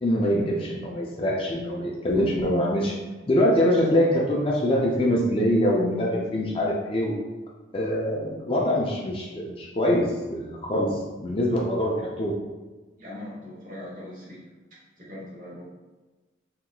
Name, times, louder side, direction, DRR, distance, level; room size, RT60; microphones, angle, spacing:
voice 1, 0.0-2.9 3.3-7.2 7.7-12.3, equal, 30° left, -3 dB, 0.4 m, -24 dB
voice 2, 13.0-14.4 15.0-15.6, left 1 dB, 45° right, -6 dB, 1.1 m, -40 dB
3.4 x 2.8 x 2.3 m, 1.2 s
head